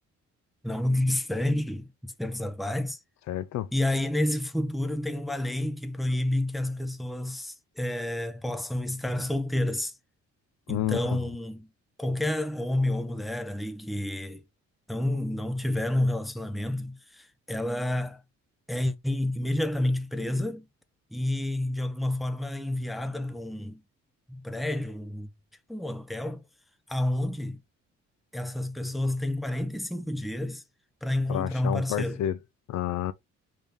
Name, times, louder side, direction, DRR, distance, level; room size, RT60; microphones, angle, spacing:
voice 1, 0.6-3.0 3.7-9.9 10.7-11.7 12.0-14.4 14.9-18.2 18.7-20.7 21.1-23.8 24.3-25.3 25.7-26.4 26.9-27.6 28.3-30.6 31.0-32.2, left 1 dB, ahead, 0.5 m, -29 dB
voice 2, 3.3-3.7 10.7-11.2 31.3-32.4 32.7-33.1, left 12 dB, 65° left, 0.4 m, -30 dB
3.2 x 2.7 x 3.5 m
cardioid pair, 90°, 30 cm